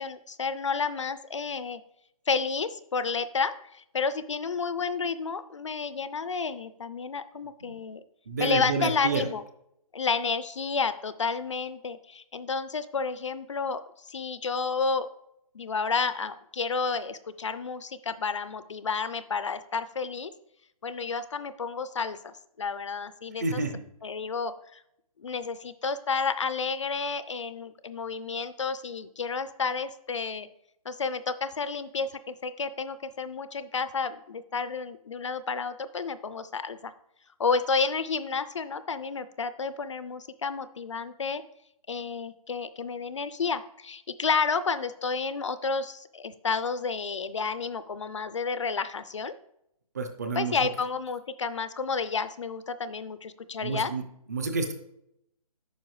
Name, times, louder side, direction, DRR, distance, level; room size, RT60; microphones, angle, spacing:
voice 1, 0.0-1.8 2.3-8.0 8.4-9.4 9.9-15.1 15.5-20.3 20.8-23.6 24.0-24.8 25.2-30.5 30.9-36.9 37.4-41.4 41.9-49.3 50.3-53.9, left 5 dB, 50° left, 15 dB, 0.4 m, -31 dB
voice 2, 8.3-9.2 23.4-23.8 49.9-50.5 53.6-54.0 54.3-54.7, right 4 dB, 25° right, 6 dB, 0.6 m, -29 dB
9.3 x 5.6 x 3.1 m, 0.78 s
hypercardioid pair, 175°, 20 cm